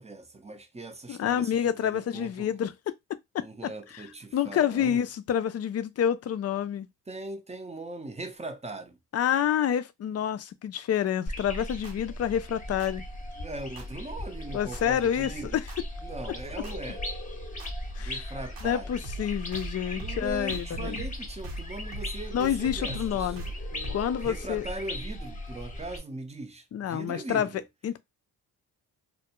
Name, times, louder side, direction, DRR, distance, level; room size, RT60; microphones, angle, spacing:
voice 1, 0.0-2.5 3.4-5.0 7.1-9.0 13.3-15.6 16.0-17.1 18.0-19.0 20.0-23.4 24.2-27.6, right 2 dB, 15° right, 0.6 m, -40 dB
voice 2, 1.1-2.9 3.3-3.7 4.3-6.9 9.1-13.0 14.5-15.6 18.0-18.2 18.6-21.0 22.3-23.5 23.9-24.7 26.7-27.5 27.8-28.0, left 9 dB, 40° left, 0.4 m, -28 dB
sound 1, 11.3-26.0, left 1 dB, 20° left, 0.8 m, -38 dB
sound 2, 11.8-11.9 12.8-12.9 13.8-13.9 14.7-14.8 15.7-15.8 16.6-16.7 17.6-17.7 18.6-18.7 19.0-19.3 19.5-19.7 20.0-20.2 20.5-21.2 21.4-21.7 21.9-22.1 22.4-24.3, right 2 dB, 75° right, 1.0 m, -40 dB
2.2 x 2.2 x 2.9 m
supercardioid pair, 60°, 42 cm